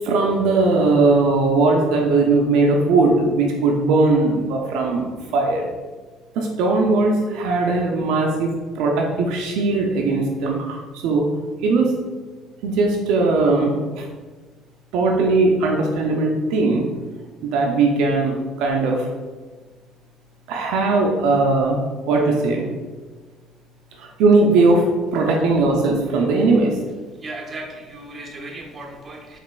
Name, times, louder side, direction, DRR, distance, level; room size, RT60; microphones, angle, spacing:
voice 1, 0.0-5.7 6.4-8.5 8.8-11.3 11.6-11.9 12.6-14.1 14.9-16.9 17.4-19.1 20.5-21.8 22.1-22.7 24.0-24.9 25.1-26.8, right 3 dB, 75° right, 0 dB, 0.4 m, -19 dB
voice 2, 27.2-29.4, right 2 dB, 35° right, 1 dB, 0.7 m, -36 dB
4.0 x 2.9 x 2.2 m, 1.4 s
supercardioid pair, 85°, 0 cm